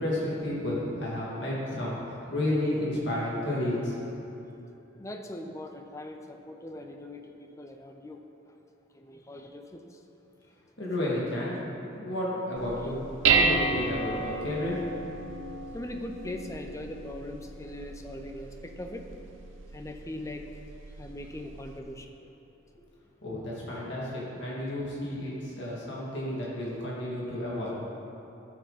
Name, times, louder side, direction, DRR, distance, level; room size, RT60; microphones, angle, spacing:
voice 1, 0.0-3.9 10.8-11.6 11.9-13.0 13.2-14.8 23.2-27.9, left 1 dB, 60° left, -6 dB, 2.3 m, -31 dB
voice 2, 5.0-8.6 8.9-10.0 15.7-19.2 19.7-22.1 25.7-25.8, left 1 dB, 15° left, 4 dB, 0.6 m, -41 dB
Dishes pots and pans, 12.6-21.8, right 5 dB, 75° right, 0.7 m, -32 dB
12.5 x 8.7 x 4.2 m, 2.9 s
head